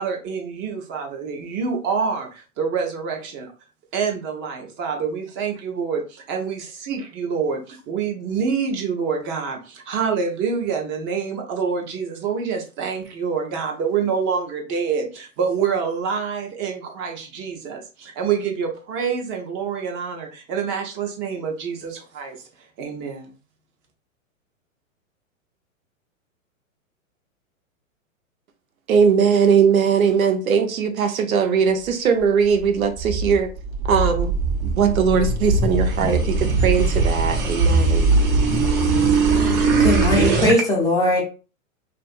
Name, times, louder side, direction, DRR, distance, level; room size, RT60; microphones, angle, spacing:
voice 1, 0.0-3.5 3.9-22.4 22.8-23.3, right 6 dB, 30° right, 0.7 m, -26 dB
voice 2, 28.9-33.5 33.9-34.3 34.6-38.1, right 6 dB, 85° right, 0.7 m, -19 dB
sound 1, 32.6-40.6, right 3 dB, 55° right, 1.0 m, -20 dB
voice 3, 39.8-41.2, left 1 dB, 10° left, 0.4 m, -19 dB
2.6 x 2.5 x 2.4 m
hypercardioid pair, 125°, 41 cm